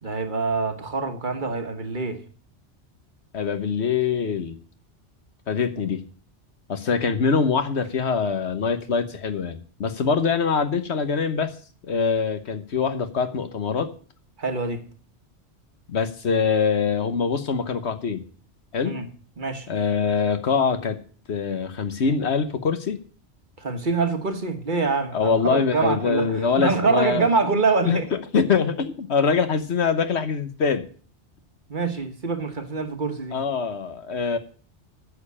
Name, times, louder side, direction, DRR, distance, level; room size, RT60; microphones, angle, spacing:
voice 1, 0.0-2.2 14.4-14.8 18.8-19.1 19.4-19.7 23.6-28.1 31.7-33.4, right 4 dB, 45° right, 1.4 m, -25 dB
voice 2, 3.3-4.6 5.5-6.1 6.7-11.5 11.8-13.9 15.9-18.2 18.7-19.0 19.7-21.0 21.3-23.0 25.1-27.3 27.9-30.9 33.3-34.4, left 5 dB, 70° left, 1.3 m, -24 dB
9.7 x 7.0 x 8.5 m
omnidirectional pair, 1.2 m